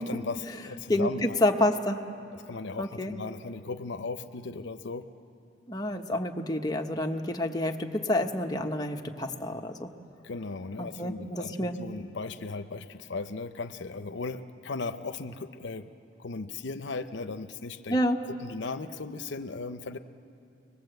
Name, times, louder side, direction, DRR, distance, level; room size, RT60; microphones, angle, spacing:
voice 1, 0.0-1.4 2.3-5.1 10.2-15.9 16.2-18.0 18.3-20.0, left 4 dB, 75° left, 9 dB, 0.7 m, -37 dB
voice 2, 0.9-2.0 2.8-3.1 5.7-9.9 11.0-11.7 17.9-18.2, left 1 dB, 20° left, 3 dB, 1.2 m, -28 dB
25.0 x 20.5 x 8.0 m, 2.6 s
head